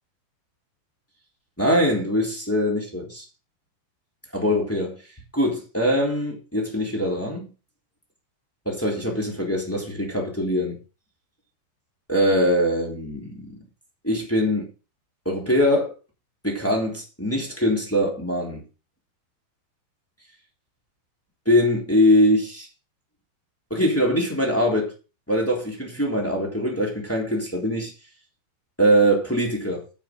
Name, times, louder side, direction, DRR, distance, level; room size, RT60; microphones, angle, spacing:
voice 1, 1.6-3.2 4.3-5.0 5.3-7.5 8.6-10.8 12.1-13.5 14.0-14.7 15.2-15.9 16.4-18.6 21.4-22.7 23.7-24.9 25.3-27.9 28.8-29.8, equal, 5° left, 2.6 m, -22 dB
10.0 x 6.7 x 6.6 m
omnidirectional pair, 4.9 m